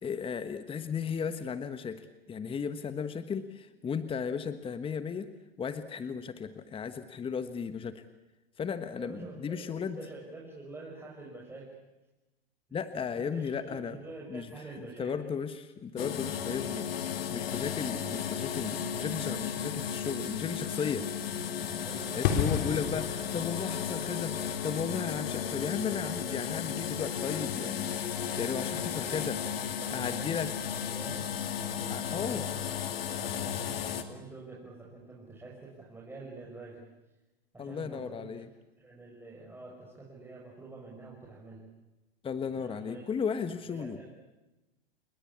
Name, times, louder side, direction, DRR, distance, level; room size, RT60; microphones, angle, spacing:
voice 1, 0.0-5.3 5.6-8.0 8.6-10.0 12.7-14.0 14.3-14.5 14.8-21.1 22.2-27.9 28.4-29.4 29.9-30.5 31.9-32.5 37.6-38.5 42.2-44.0, left 6 dB, 20° left, 11 dB, 1.3 m, -35 dB
voice 2, 8.9-11.7 12.7-12.8 13.1-15.1 21.8-22.4 28.2-31.4 31.7-36.8 37.5-38.4 38.8-41.6 42.5-43.1 43.4-44.1, right 3 dB, 5° right, -4 dB, 6.6 m, -47 dB
sound 1, 16.0-34.0, left 8 dB, 75° left, 2.4 m, -34 dB
sound 2, 22.2-28.7 29.0-29.2, left 7 dB, 55° left, 4.0 m, -36 dB
29.0 x 20.5 x 8.7 m, 1.0 s
hypercardioid pair, 105°, 30 cm